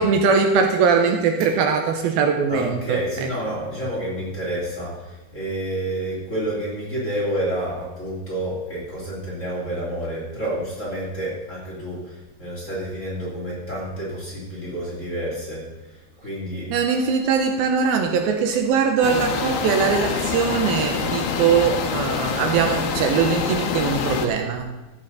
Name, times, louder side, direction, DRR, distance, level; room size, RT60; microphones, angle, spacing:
voice 1, 0.0-3.3 16.7-24.7, right 6 dB, 75° right, 6 dB, 2.5 m, -21 dB
voice 2, 2.5-15.6 15.9-16.7, right 1 dB, 20° left, -6 dB, 2.9 m, -29 dB
sound 1, 19.0-24.3, left 6 dB, 80° left, 3.0 m, -25 dB
14.0 x 8.7 x 4.0 m, 1.1 s
omnidirectional pair, 4.5 m